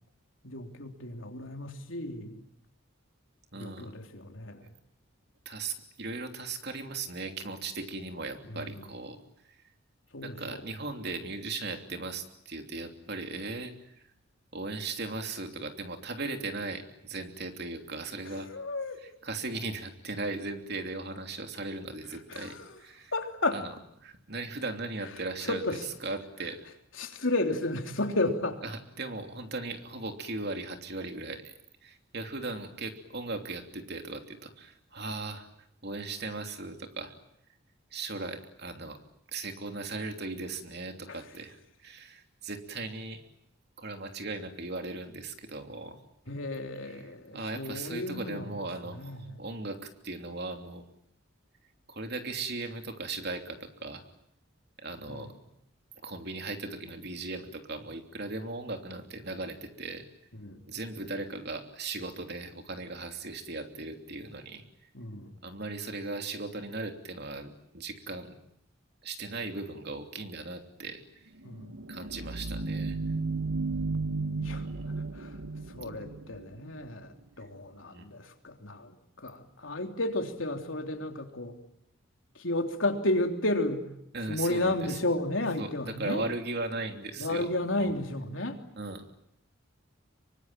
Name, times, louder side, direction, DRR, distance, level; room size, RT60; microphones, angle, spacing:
voice 1, 0.4-2.4 3.6-4.7 8.5-8.7 10.1-10.6 18.3-19.0 22.3-22.8 23.1-23.6 25.5-25.9 27.0-28.6 41.1-41.2 46.3-48.5 48.9-49.2 55.1-55.3 60.3-60.6 64.9-65.4 71.4-71.7 74.4-74.7 75.0-75.4 75.7-81.6 82.4-83.9 84.3-86.3 87.2-88.6, left 2 dB, 75° left, 4 dB, 3.5 m, -32 dB
voice 2, 3.5-3.9 5.4-9.2 10.2-14.0 14.5-18.5 19.0-23.1 23.5-23.7 24.0-26.6 28.6-31.5 31.8-35.5 35.8-37.1 37.9-39.0 39.3-43.2 43.8-46.0 46.9-47.1 47.3-50.8 51.9-54.0 54.8-55.3 56.0-60.1 60.7-64.6 65.4-68.4 69.0-71.3 71.9-73.0 74.5-74.8 77.8-78.1 84.1-85.0 85.6-87.5 87.8-87.9 88.8-89.0, right 3 dB, 55° right, 5 dB, 3.1 m, -38 dB
sound 1, 71.4-76.9, right 3 dB, 85° right, 1.2 m, -34 dB
25.5 x 24.0 x 9.1 m, 0.76 s
head